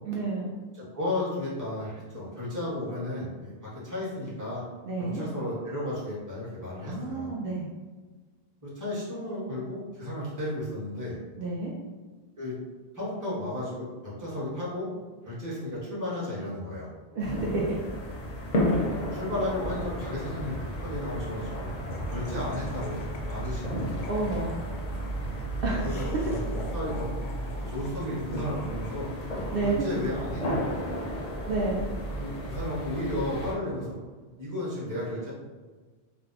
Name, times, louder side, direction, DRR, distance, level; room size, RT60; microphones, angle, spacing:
voice 1, 0.0-0.5 4.8-5.2 6.8-7.7 11.4-11.7 17.1-17.8 18.7-18.9 24.0-24.5 25.6-26.1 29.5-29.9 31.4-31.8, right 3 dB, 65° right, -4 dB, 0.7 m, -30 dB
voice 2, 0.9-4.6 5.0-7.3 8.6-11.2 12.4-12.5 12.9-14.9 15.2-16.9 18.9-21.7 22.1-23.0 23.3-24.0 25.8-27.1 27.6-29.1 29.6-30.9 32.2-34.0 34.4-35.3, left 1 dB, 20° right, -8 dB, 1.0 m, -33 dB
sound 1, 17.2-33.5, equal, 45° left, 0.6 m, -33 dB
Laughter, 21.9-30.3, left 2 dB, 90° left, 0.9 m, -46 dB
2.5 x 2.1 x 3.9 m, 1.4 s
omnidirectional pair, 1.1 m